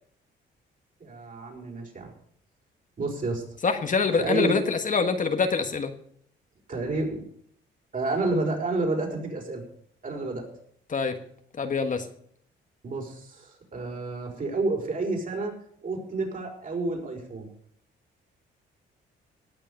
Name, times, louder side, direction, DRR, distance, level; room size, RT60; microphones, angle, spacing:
voice 1, 1.0-2.1 3.0-3.4 4.2-4.6 6.7-7.2 7.9-9.6 10.0-10.5 12.8-15.5 15.8-17.5, right 2 dB, 40° right, 1 dB, 5.7 m, -29 dB
voice 2, 3.6-5.9 10.9-11.2 11.6-12.1, left 5 dB, 40° left, 7 dB, 1.5 m, -25 dB
18.0 x 7.0 x 6.8 m, 0.64 s
cardioid pair, 90°, 20 cm